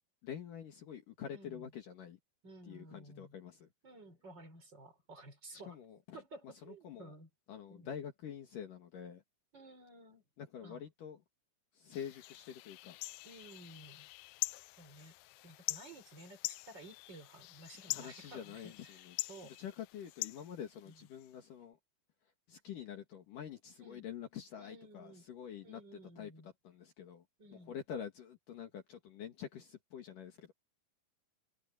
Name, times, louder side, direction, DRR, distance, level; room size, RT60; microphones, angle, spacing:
voice 1, 0.2-2.2 2.7-3.7 5.5-6.0 6.6-7.1 7.5-9.2 10.4-11.2 11.8-13.0 17.9-19.1 19.6-21.8 22.5-25.8 26.2-27.2 27.7-30.5, left 8 dB, 60° left, 3.3 m, -47 dB
voice 2, 1.3-1.7 2.4-3.3 3.8-5.8 6.1-7.3 7.7-7.9 9.5-10.2 10.6-10.8 13.2-14.1 14.8-15.2 15.4-19.6 20.8-21.1 23.8-24.1 24.6-25.3 25.6-26.5 27.4-27.8, right 2 dB, 30° right, 4.7 m, -54 dB
sound 1, 11.9-21.3, left 20 dB, 85° left, 2.5 m, -44 dB
omnidirectional pair, 4.4 m